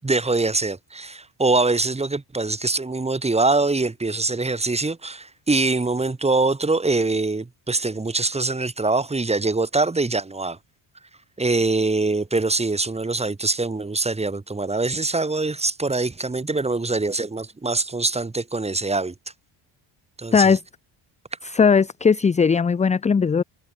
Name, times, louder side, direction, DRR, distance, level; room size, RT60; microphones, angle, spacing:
voice 1, 0.0-10.6 11.4-19.1 20.2-20.6, right 3 dB, 15° right, 5.6 m, -23 dB
voice 2, 21.4-23.4, left 5 dB, 15° left, 0.6 m, -18 dB
cardioid pair, 145°, 46 cm